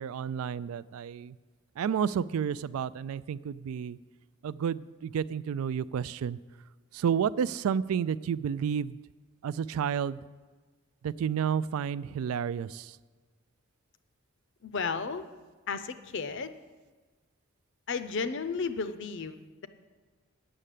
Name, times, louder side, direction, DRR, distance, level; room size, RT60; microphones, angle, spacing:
voice 1, 0.0-1.4 1.8-4.0 4.4-6.4 6.9-9.0 9.4-10.2 11.0-13.0, right 7 dB, 75° right, 19 dB, 0.3 m, -31 dB
voice 2, 14.6-15.3 15.7-16.5 17.9-19.7, left 5 dB, 55° left, 11 dB, 0.6 m, -33 dB
8.9 x 6.5 x 8.3 m, 1.4 s
head